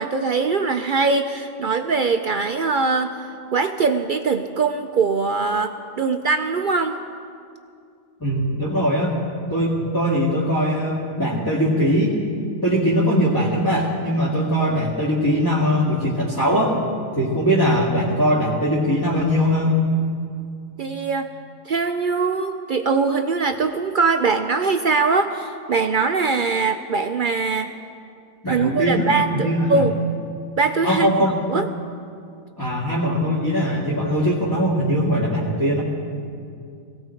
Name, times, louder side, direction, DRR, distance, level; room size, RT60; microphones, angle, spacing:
voice 1, 0.0-3.2 3.5-7.0 20.8-21.3 21.7-27.7 28.5-30.0 30.6-31.7, right 4 dB, 55° right, 7 dB, 0.5 m, -22 dB
voice 2, 8.2-9.1 9.5-12.2 12.6-16.8 17.2-19.8 28.4-29.9 30.8-31.4 32.6-35.8, equal, 15° left, -6 dB, 1.9 m, -21 dB
18.5 x 17.0 x 4.5 m, 2.3 s
omnidirectional pair, 1.4 m